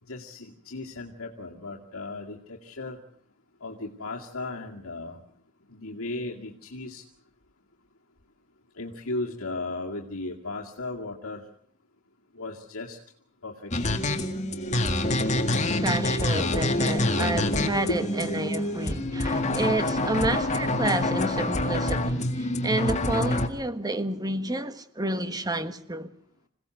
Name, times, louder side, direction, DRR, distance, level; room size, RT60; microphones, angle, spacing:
voice 1, 0.0-3.0 3.6-5.3 5.6-7.1 8.7-11.5 12.3-13.0 13.4-14.0 17.9-18.0 19.0-19.2 19.8-20.1, left 2 dB, 65° left, 2.3 m, -36 dB
sound 1, 13.7-23.5, left 1 dB, 30° left, 1.9 m, -26 dB
voice 2, 15.8-26.1, right 2 dB, 15° right, 1.4 m, -30 dB
27.0 x 17.5 x 7.8 m
head